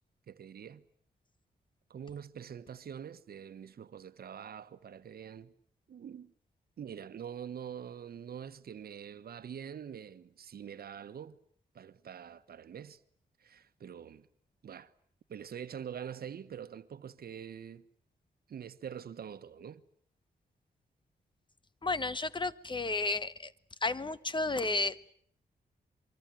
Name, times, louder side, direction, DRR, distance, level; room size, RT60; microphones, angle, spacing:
voice 1, 0.3-0.8 1.9-5.5 5.9-6.3 6.8-11.4 11.7-13.0 13.4-14.3 14.6-14.9 15.3-17.9 18.5-19.8, right 8 dB, 70° right, 1.3 m, -45 dB
voice 2, 21.8-23.5 23.8-25.1, left 3 dB, 30° left, 1.2 m, -32 dB
25.0 x 23.5 x 9.2 m
cardioid pair, 80°, 16 cm